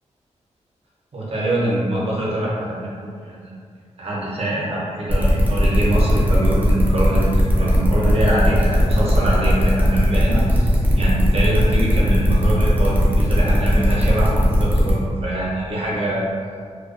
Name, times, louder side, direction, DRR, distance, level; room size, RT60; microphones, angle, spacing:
voice 1, 1.1-3.5 4.0-7.3 7.6-16.3, right 1 dB, 55° right, -6 dB, 0.7 m, -24 dB
sound 1, 5.1-14.9, equal, 15° right, 0.5 m, -18 dB
2.2 x 2.2 x 2.5 m, 2.1 s
wide cardioid pair, 110°, 12 cm